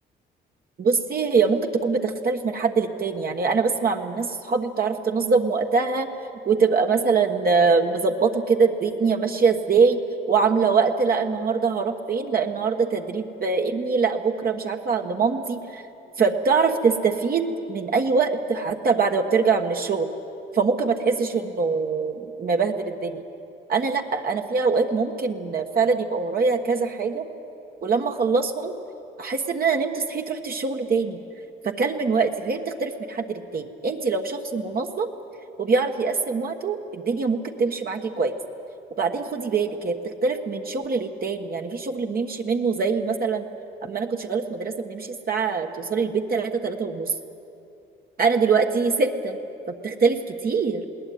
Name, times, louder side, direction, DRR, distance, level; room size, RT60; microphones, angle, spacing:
voice 1, 0.8-6.1 6.4-10.0 10.3-15.8 16.2-20.1 20.5-23.2 23.7-27.3 27.8-28.7 29.2-31.2 31.6-35.1 35.6-38.3 39.0-43.5 43.8-47.1 48.2-49.4 49.8-50.8, right 4 dB, 50° right, 3 dB, 1.4 m, -23 dB
20.5 x 18.0 x 9.4 m, 2.8 s
cardioid pair, 90°, 20 cm